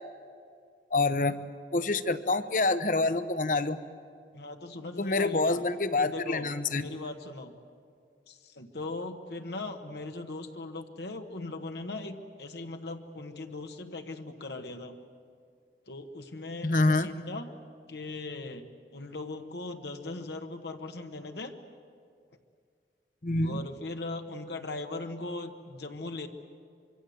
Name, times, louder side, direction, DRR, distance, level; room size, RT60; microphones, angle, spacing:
voice 1, 0.9-1.4 1.7-3.8 5.0-6.8 16.6-17.1 23.2-23.6, left 3 dB, 50° left, 12 dB, 0.9 m, -26 dB
voice 2, 4.3-5.6 6.0-6.5 6.7-7.5 8.3-14.9 15.9-17.5 17.9-21.5 23.4-26.3, left 2 dB, 75° left, 5 dB, 1.3 m, -39 dB
25.0 x 24.0 x 7.9 m, 2.2 s
head